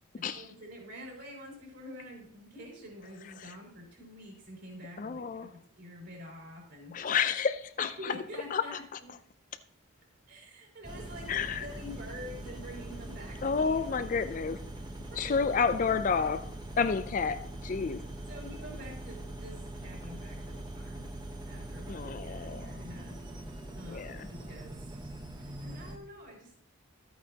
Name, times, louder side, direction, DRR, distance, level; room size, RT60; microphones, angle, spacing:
voice 1, 0.2-7.0 7.8-9.2 10.3-11.3 11.6-14.1 15.1-15.5 16.1-16.4 18.3-21.1 21.5-23.2 23.7-24.8 25.4-26.5, equal, 50° right, 4.2 m, -47 dB
voice 2, 5.0-5.5 6.9-8.1 8.5-8.6 11.3-11.7 13.4-14.6 15.2-16.5 16.8-18.0 21.9-22.7 23.9-24.3, left 5 dB, 40° left, 0.3 m, -30 dB
sound 1, 10.8-26.0, right 1 dB, 20° right, 1.0 m, -42 dB
13.0 x 8.7 x 2.8 m
head